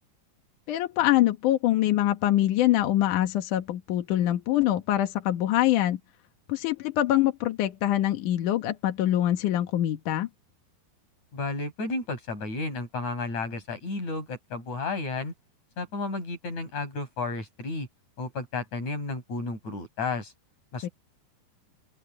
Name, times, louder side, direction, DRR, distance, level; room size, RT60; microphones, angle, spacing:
voice 1, 0.7-6.0 6.5-10.3 20.8-20.9, left 13 dB, 65° left, 2.0 m, -24 dB
voice 2, 11.3-15.3 15.8-17.9 18.2-20.3 20.7-20.9, left 3 dB, 40° left, 7.5 m, -32 dB
open air
omnidirectional pair, 5.3 m